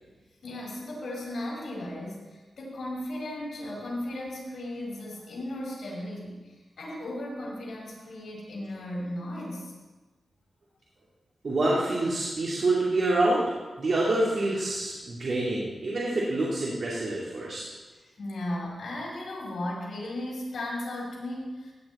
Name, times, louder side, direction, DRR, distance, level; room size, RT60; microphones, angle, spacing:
voice 1, 0.4-9.7 17.9-21.7, left 1 dB, 75° left, -4 dB, 5.2 m, -36 dB
voice 2, 11.4-13.4 13.8-17.6, right 2 dB, 55° right, -6 dB, 2.4 m, -26 dB
16.0 x 9.8 x 4.2 m, 1.2 s
wide cardioid pair, 120°, 0 cm